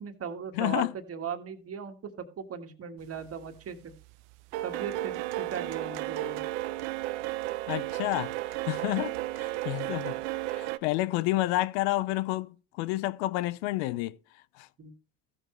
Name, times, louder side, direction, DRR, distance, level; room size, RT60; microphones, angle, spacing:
voice 1, 0.0-3.9 4.6-6.4 14.8-14.9, right 7 dB, 45° right, 1.7 m, -38 dB
voice 2, 0.5-0.9 7.7-8.3 8.7-10.1 10.5-14.2 14.6-14.7, left 18 dB, 80° left, 0.5 m, -30 dB
sound 1, 3.2-3.6 3.9-10.8, right 16 dB, 80° right, 0.6 m, -34 dB
15.0 x 6.8 x 3.1 m
hypercardioid pair, 70°, 34 cm